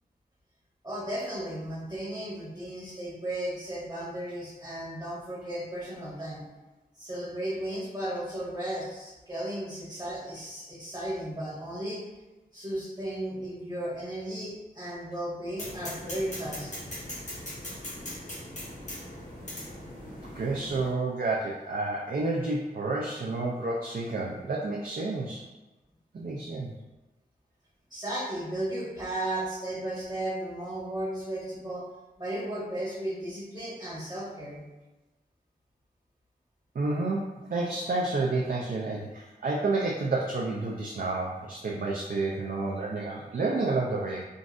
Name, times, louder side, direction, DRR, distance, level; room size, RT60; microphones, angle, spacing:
voice 1, 0.8-6.4 6.9-12.0 12.5-16.7 27.9-31.8 32.2-34.6, right 1 dB, 25° right, -8 dB, 1.4 m, -35 dB
sound 1, 15.6-20.9, left 1 dB, 45° left, 1.3 m, -40 dB
voice 2, 20.3-25.4 26.1-26.7 36.7-44.3, right 3 dB, 60° right, -3 dB, 0.4 m, -30 dB
3.8 x 2.5 x 2.4 m, 1.1 s
wide cardioid pair, 70°, 16 cm